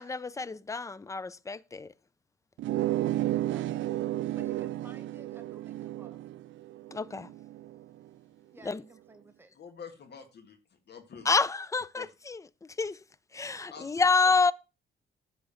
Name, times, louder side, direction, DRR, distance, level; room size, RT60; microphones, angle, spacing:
voice 1, 0.0-1.9 6.9-7.3 8.6-8.8 11.2-12.4 12.8-13.0 13.3-14.5, left 4 dB, 15° left, 0.5 m, -28 dB
sound 1, 2.6-7.9, right 14 dB, 70° right, 0.5 m, -32 dB
voice 2, 3.5-3.9 4.3-6.2 8.5-9.5, right 2 dB, 10° right, 1.0 m, -54 dB
voice 3, 9.5-10.6 10.9-11.3 11.9-12.1 13.7-14.3, left 6 dB, 55° left, 1.8 m, -47 dB
10.0 x 3.8 x 7.0 m
cardioid pair, 90°, 20 cm